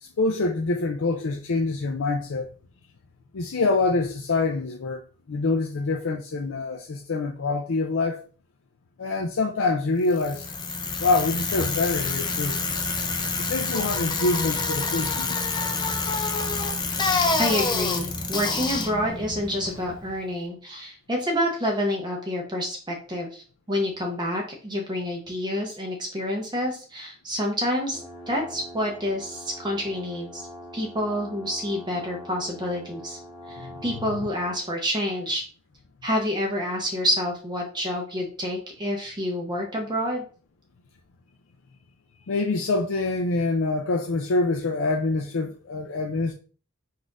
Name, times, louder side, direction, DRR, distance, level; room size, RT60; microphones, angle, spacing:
voice 1, 0.0-2.5 3.3-5.0 5.3-8.2 9.0-10.5 11.0-12.6 13.4-15.5 33.6-33.8 42.3-46.3, left 3 dB, 70° left, 0.5 m, -25 dB
Bicycle, 10.1-20.2, left 3 dB, 20° left, 0.5 m, -27 dB
voice 2, 17.4-30.5 30.7-33.2 33.5-35.4 36.0-40.2, equal, 20° right, 0.9 m, -28 dB
sound 1, 27.9-34.7, equal, 5° left, 1.2 m, -43 dB
4.1 x 2.6 x 4.7 m
head